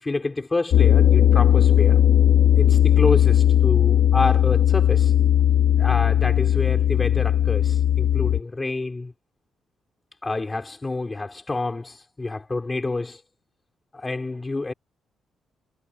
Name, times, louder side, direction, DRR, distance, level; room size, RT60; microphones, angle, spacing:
voice 1, 0.0-2.0 2.6-5.1 5.8-9.1 10.2-13.2 13.9-14.7, left 3 dB, 15° left, 4.0 m, -28 dB
sound 1, 0.7-8.4, left 10 dB, 80° left, 1.0 m, -17 dB
cardioid pair, 145°, 0 cm